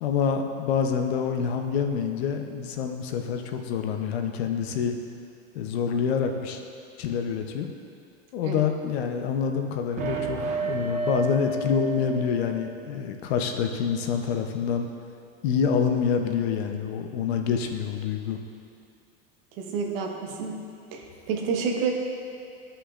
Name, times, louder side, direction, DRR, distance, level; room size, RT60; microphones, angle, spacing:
voice 1, 0.0-4.9 5.5-6.6 7.0-7.7 8.3-14.9 15.4-18.4, left 7 dB, 90° left, 5 dB, 0.8 m, -27 dB
sound 1, 10.0-12.7, right 3 dB, 25° right, 0.4 m, -30 dB
voice 2, 19.6-20.6 20.9-21.9, right 5 dB, 65° right, 1 dB, 1.1 m, -29 dB
13.0 x 5.6 x 2.5 m, 2.5 s
supercardioid pair, 160°, 30 cm